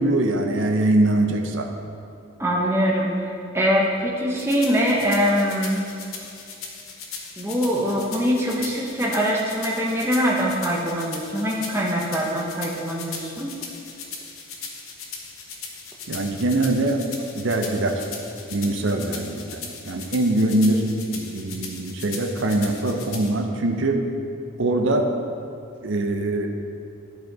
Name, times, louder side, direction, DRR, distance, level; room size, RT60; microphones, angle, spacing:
voice 1, 0.0-1.7 16.1-17.0 17.3-18.0 18.5-19.6 19.8-20.9 21.1-24.0 24.6-25.1 25.8-26.5, right 2 dB, 60° right, 3 dB, 0.7 m, -22 dB
voice 2, 2.4-5.9 7.4-13.5, equal, 10° right, -3 dB, 0.8 m, -23 dB
sound 1, 4.4-23.3, left 5 dB, 80° left, 1.0 m, -38 dB
11.5 x 5.1 x 3.9 m, 2.6 s
head